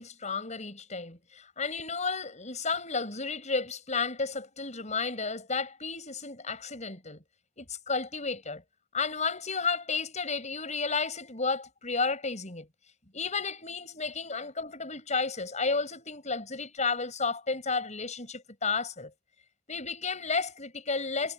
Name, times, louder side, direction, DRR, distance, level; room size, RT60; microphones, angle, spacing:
voice 1, 0.0-7.2 7.6-8.6 8.9-12.7 13.1-19.1 19.7-21.3, left 4 dB, 40° left, 7.9 m, -32 dB
head